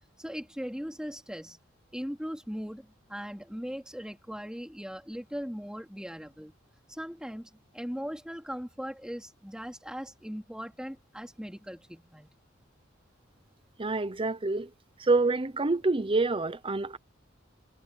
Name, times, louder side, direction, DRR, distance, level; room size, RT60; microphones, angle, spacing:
voice 1, 0.2-1.6 1.9-6.5 6.9-12.3, equal, 5° right, 3.3 m, -39 dB
voice 2, 13.8-14.7 15.0-17.0, right 3 dB, 25° right, 0.7 m, -27 dB
head